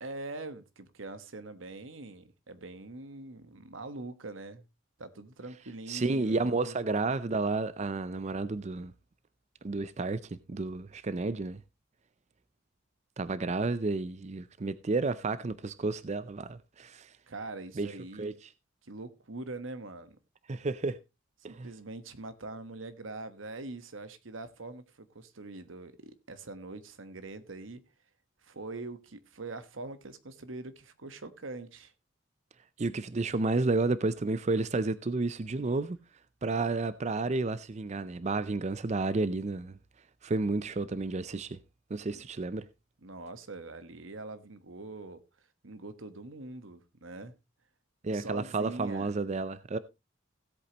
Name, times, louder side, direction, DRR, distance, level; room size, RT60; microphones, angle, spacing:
voice 1, 0.0-4.6 5.0-6.8 17.3-18.4 18.8-20.2 21.4-27.8 28.4-31.9 42.1-42.2 43.0-45.2 45.6-47.3 48.1-49.1, right 2 dB, 85° right, 1.3 m, -43 dB
voice 2, 5.9-8.9 9.6-11.6 13.2-17.1 17.8-17.9 18.2-18.3 20.5-21.0 21.4-21.7 32.8-36.0 36.4-39.8 40.2-41.6 41.9-42.7 48.0-49.8, right 3 dB, 35° right, 0.5 m, -31 dB
16.5 x 8.3 x 2.9 m
head